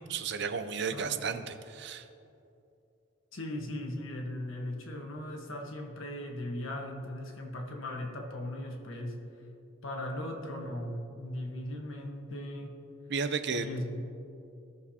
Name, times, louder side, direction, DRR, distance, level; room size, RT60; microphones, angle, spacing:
voice 1, 0.1-2.1 13.1-13.7, right 5 dB, 55° right, 10 dB, 0.5 m, -33 dB
voice 2, 0.9-1.2 3.3-9.2 9.8-12.8 13.5-14.0, left 1 dB, 80° left, 1 dB, 1.3 m, -38 dB
17.0 x 6.7 x 2.8 m, 2.7 s
head